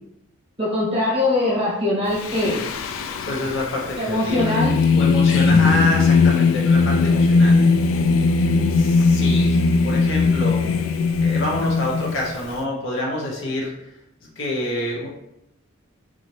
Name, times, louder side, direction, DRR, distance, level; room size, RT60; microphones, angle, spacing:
voice 1, 0.6-2.6 4.0-4.8, left 2 dB, 30° right, -7 dB, 1.3 m, -22 dB
Singing, 2.1-12.6, left 4 dB, 85° left, 0.3 m, -19 dB
voice 2, 3.3-4.6 4.9-7.6 8.7-10.7 11.2-13.7 14.2-15.1, left 1 dB, 65° left, -3 dB, 0.8 m, -27 dB
3.9 x 2.8 x 3.1 m, 0.85 s
head